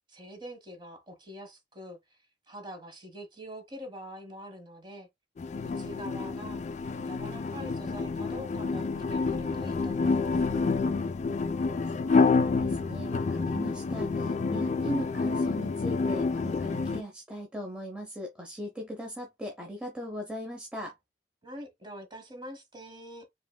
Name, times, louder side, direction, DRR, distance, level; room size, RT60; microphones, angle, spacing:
voice 1, 0.1-2.0 2.5-5.1 5.8-6.6 7.0-10.6 21.4-23.3, equal, 25° right, 1.4 m, -44 dB
sound 1, 5.4-17.0, left 4 dB, 40° left, 0.3 m, -28 dB
voice 2, 11.9-21.0, equal, 5° right, 0.7 m, -39 dB
5.0 x 3.1 x 2.2 m
head